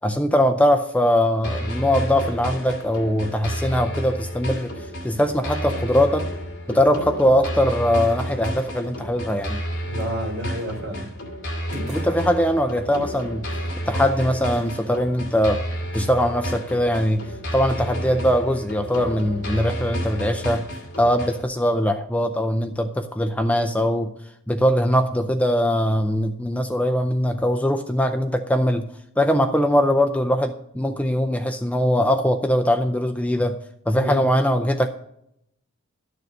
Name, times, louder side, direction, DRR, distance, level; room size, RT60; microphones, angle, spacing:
voice 1, 0.0-6.3 6.7-9.6 11.9-13.4 13.9-15.6 15.9-20.6 21.0-24.1 24.5-28.9 29.2-33.6 33.9-34.9, equal, 5° left, 7 dB, 0.4 m, -21 dB
sound 1, 1.4-21.4, equal, 55° left, 2.4 m, -31 dB
voice 2, 9.9-11.0 34.0-34.2, right 1 dB, 60° right, 2 dB, 4.2 m, -29 dB
sound 2, 10.6-10.8 11.7-12.2 13.5-13.8 18.8-19.1 20.7-21.0, equal, 35° right, 4.1 m, -40 dB
12.0 x 6.7 x 5.2 m, 0.76 s
head